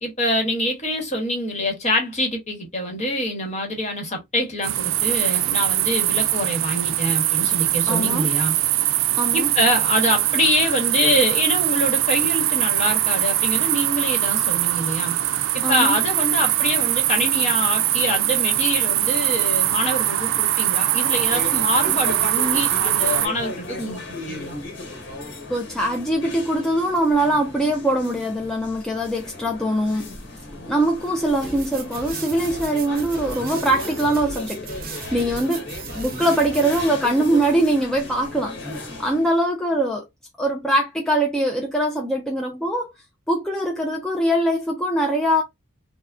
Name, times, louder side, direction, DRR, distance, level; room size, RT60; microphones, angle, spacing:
voice 1, 0.0-8.5 9.3-15.2 15.5-24.6, left 1 dB, 35° left, 1.1 m, -25 dB
sound 1, 4.6-23.3, right 13 dB, 85° right, 0.4 m, -22 dB
voice 2, 7.9-8.3 9.2-9.5 15.6-16.0 25.5-30.1 30.7-40.0 40.4-42.9 43.3-45.4, right 1 dB, 5° left, 0.3 m, -22 dB
sound 2, 20.9-39.3, left 2 dB, 60° left, 1.1 m, -36 dB
sound 3, 31.4-36.9, right 4 dB, 45° right, 0.6 m, -36 dB
3.4 x 2.1 x 2.4 m
head